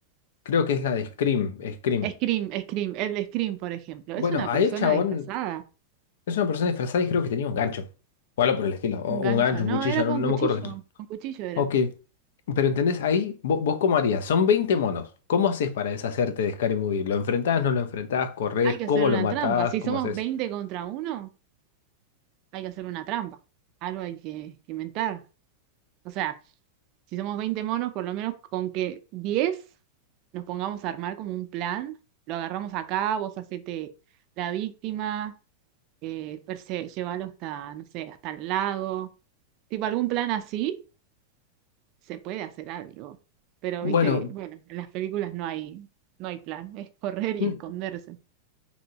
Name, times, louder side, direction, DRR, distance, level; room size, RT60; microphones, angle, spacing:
voice 1, 0.5-2.1 4.2-5.3 6.3-7.9 8.4-10.7 11.6-11.9 12.5-20.2 43.8-44.3 47.4-47.6, left 6 dB, 75° left, 0.5 m, -25 dB
voice 2, 2.0-5.0 5.3-5.6 9.1-10.3 10.6-10.7 11.2-11.6 18.6-21.3 22.5-23.4 23.8-25.2 26.2-26.3 27.1-29.5 30.3-31.9 32.3-33.9 34.4-35.3 36.0-39.1 39.7-40.8 42.1-43.1 43.6-44.2 44.7-45.9 46.2-48.2, right 12 dB, 35° right, 0.3 m, -31 dB
3.0 x 2.7 x 2.7 m
supercardioid pair, 160°, 0 cm